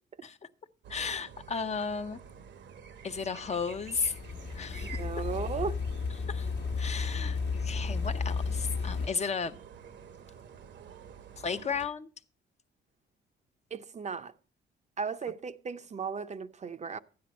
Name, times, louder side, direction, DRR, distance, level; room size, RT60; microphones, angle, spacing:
sound 1, 0.8-11.9, right 7 dB, 65° right, 0.9 m, -49 dB
voice 1, 0.9-2.2 3.0-4.2 4.5-5.0 6.3-6.5 6.8-9.6 11.4-12.1, left 5 dB, 35° left, 0.6 m, -34 dB
sound 2, 3.6-9.1, left 5 dB, 60° left, 1.1 m, -33 dB
voice 2, 4.8-5.8 13.7-14.3 15.0-17.0, right 5 dB, 35° right, 0.6 m, -36 dB
12.5 x 9.6 x 4.2 m
cardioid pair, 90°, 20 cm